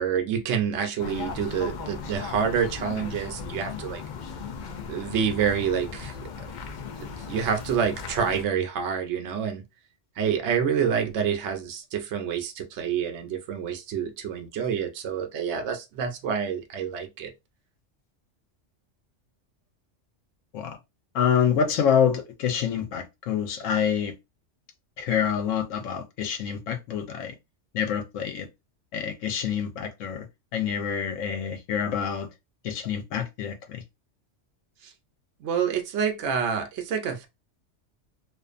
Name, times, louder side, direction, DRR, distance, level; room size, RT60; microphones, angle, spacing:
voice 1, 0.0-4.0 4.9-6.1 7.0-9.6 10.2-17.3 34.8-34.9 35.4-37.3, right 7 dB, 70° right, 0.9 m, -27 dB
sound 1, 1.0-8.4, left 5 dB, 60° left, 0.5 m, -37 dB
voice 2, 21.1-24.1 25.0-27.3 27.7-28.5 28.9-30.3 30.5-32.3 32.6-33.8, left 8 dB, 90° left, 1.0 m, -26 dB
2.5 x 2.4 x 2.4 m
omnidirectional pair, 1.2 m